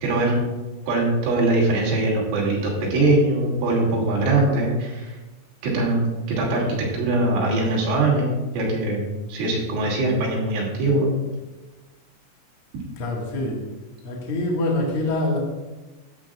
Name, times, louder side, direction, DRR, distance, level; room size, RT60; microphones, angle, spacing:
voice 1, 0.0-0.4 0.9-5.2 5.6-6.1 6.4-9.0 9.3-11.1, right 2 dB, 85° right, -3 dB, 5.1 m, -22 dB
voice 2, 13.0-13.6 14.0-15.4, left 2 dB, 60° left, -2 dB, 1.5 m, -25 dB
14.0 x 10.0 x 2.4 m, 1.1 s
omnidirectional pair, 5.5 m